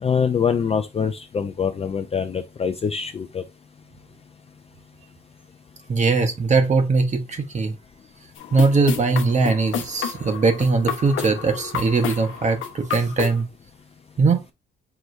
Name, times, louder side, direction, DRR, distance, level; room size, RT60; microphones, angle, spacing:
voice 1, 0.0-3.4, left 6 dB, 30° left, 0.4 m, -24 dB
voice 2, 5.9-7.7 8.5-13.4 14.2-14.4, right 4 dB, 35° right, 0.8 m, -20 dB
sound 1, 8.4-13.4, left 8 dB, 80° left, 0.8 m, -31 dB
4.8 x 3.0 x 2.5 m
cardioid pair, 90°, 20 cm